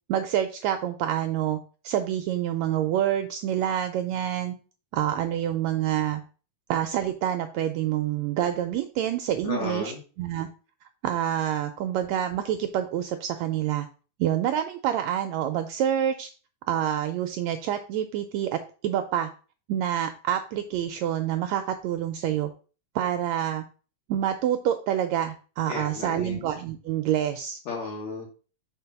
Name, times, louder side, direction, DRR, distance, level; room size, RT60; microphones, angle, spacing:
voice 1, 0.1-1.6 1.8-4.6 4.9-6.2 6.7-9.9 10.2-10.5 11.0-13.9 14.2-16.3 16.7-19.3 19.7-22.5 23.0-23.6 24.1-27.6, right 11 dB, 80° right, 7 dB, 1.6 m, -27 dB
voice 2, 9.4-10.0 25.7-26.4 27.7-28.3, left 4 dB, 65° left, -4 dB, 2.7 m, -33 dB
5.3 x 4.0 x 5.8 m, 0.37 s
omnidirectional pair, 3.6 m